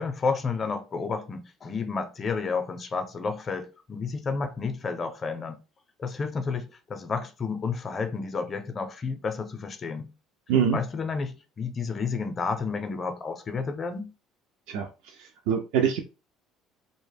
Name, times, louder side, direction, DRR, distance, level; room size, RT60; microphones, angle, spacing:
voice 1, 0.0-5.6 6.0-10.1 10.7-14.1, left 4 dB, 35° left, 0.5 m, -31 dB
voice 2, 14.7-16.0, right 7 dB, 75° right, 0.4 m, -25 dB
2.0 x 2.0 x 3.3 m
supercardioid pair, 85°, 0 cm